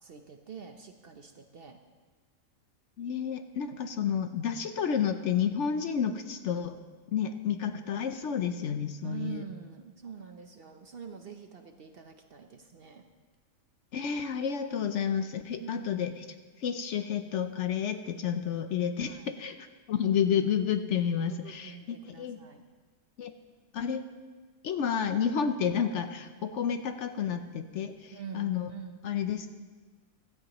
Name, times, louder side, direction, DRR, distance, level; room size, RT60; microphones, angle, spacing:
voice 1, 0.0-1.8 9.0-13.1 15.6-15.9 19.0-19.3 21.3-22.7 28.1-29.0, right 7 dB, 50° right, 6 dB, 0.8 m, -45 dB
voice 2, 3.0-6.8 7.1-9.4 13.9-22.4 23.2-23.4 23.7-24.0 24.6-28.7 29.0-29.5, left 8 dB, 65° left, 9 dB, 0.8 m, -30 dB
16.0 x 13.5 x 3.0 m, 1.4 s
omnidirectional pair, 1.5 m